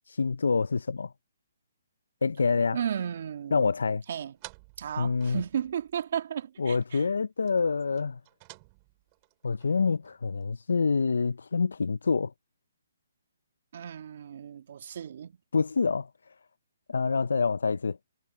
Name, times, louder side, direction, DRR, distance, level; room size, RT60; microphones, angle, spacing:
voice 1, 0.1-1.1 2.2-2.8 3.5-4.0 5.0-5.4 6.6-8.2 9.4-12.3 15.5-16.1 16.9-18.0, left 4 dB, 80° left, 0.5 m, -26 dB
voice 2, 2.7-3.7 4.1-4.3 4.8-7.0 13.7-15.4, right 8 dB, 55° right, 2.3 m, -34 dB
sound 1, 4.3-6.1 6.4-6.5 6.8-6.9 7.4-10.5, right 30 dB, 30° right, 5.4 m, -53 dB
hypercardioid pair, 150°, 0 cm